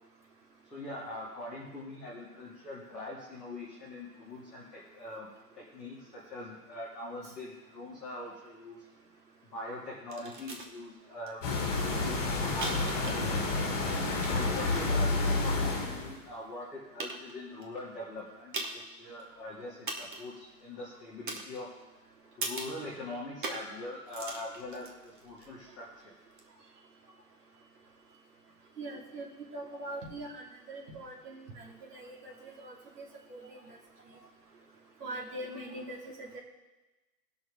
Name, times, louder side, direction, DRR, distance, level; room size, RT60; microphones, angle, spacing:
voice 1, 0.7-5.3 5.5-8.8 9.5-11.5 11.8-13.7 14.3-21.7 22.4-26.1, left 1 dB, 5° right, -17 dB, 0.6 m, -43 dB
sound 1, 10.1-10.7 11.3-11.4 11.6-13.5 13.8-15.1 15.8-15.9 16.5-16.6 17.0-17.6 18.5-18.9 19.2-19.3 19.9-20.4 21.3-21.9 22.4-22.8 23.4-23.8 24.0-25.5 26.3-26.4, right 2 dB, 30° right, 0.9 m, -40 dB
sound 2, 11.4-16.2, left 3 dB, 25° left, 2.1 m, -30 dB
voice 2, 28.8-29.3 29.5-33.8 35.0-36.4, right 1 dB, 75° right, -2 dB, 2.9 m, -42 dB
17.5 x 6.0 x 3.8 m, 1.1 s
hypercardioid pair, 180°, 48 cm